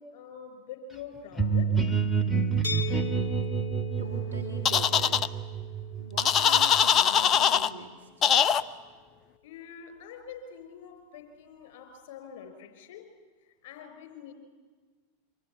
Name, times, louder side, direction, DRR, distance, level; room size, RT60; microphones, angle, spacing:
voice 1, 0.0-1.7 9.4-13.0 13.4-14.3, left 7 dB, 55° left, 7 dB, 4.8 m, -45 dB
sound 1, 1.4-7.0, right 6 dB, 10° left, 2.4 m, -29 dB
sound 2, 2.6-8.4, left 7 dB, 75° left, 1.4 m, -42 dB
voice 2, 4.0-5.2 6.0-8.1, right 2 dB, 85° right, 2 dB, 2.3 m, -42 dB
sound 3, 4.7-5.3 6.2-7.7 8.2-8.6, left 8 dB, 35° left, 0.8 m, -22 dB
27.0 x 24.5 x 8.4 m, 1.4 s
figure-of-eight pair, 90°, 0 cm